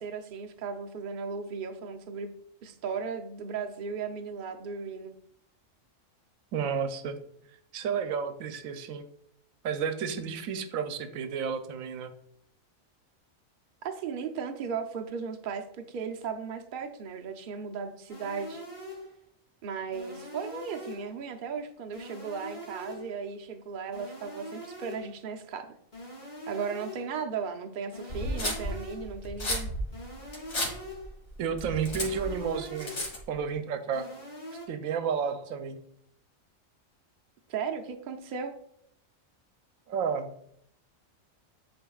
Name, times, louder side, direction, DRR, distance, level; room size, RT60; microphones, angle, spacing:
voice 1, 0.0-2.3 2.6-5.1 13.8-18.6 19.6-25.7 26.5-29.7 37.5-38.5, right 6 dB, 50° right, 4 dB, 0.6 m, -36 dB
voice 2, 6.5-7.2 7.7-9.0 9.6-12.1 31.4-32.9 33.3-34.1 34.7-35.8 39.9-40.4, right 6 dB, 80° right, 9 dB, 1.0 m, -31 dB
sound 1, 18.1-19.2 19.9-21.2 21.9-23.2 23.9-25.2 25.9-27.2 27.9-29.2 29.9-31.2 31.9-33.2 33.9-34.7, equal, 45° left, 2.6 m, -43 dB
sound 2, 28.1-33.4, left 1 dB, 85° left, 2.1 m, -33 dB
10.5 x 4.4 x 2.3 m, 0.70 s
omnidirectional pair, 1.4 m